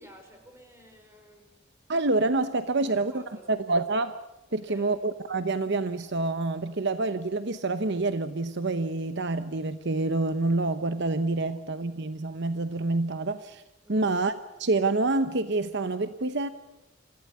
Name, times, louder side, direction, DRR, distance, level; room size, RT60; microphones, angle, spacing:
voice 1, 0.0-1.6 2.8-3.7 4.5-4.9 11.4-11.6 13.8-14.1, equal, 15° right, 4 dB, 5.0 m, -52 dB
voice 2, 1.9-3.2 3.5-4.1 4.5-13.6 13.9-16.5, right 2 dB, 60° right, 11 dB, 0.9 m, -27 dB
26.5 x 15.5 x 8.4 m, 1.0 s
head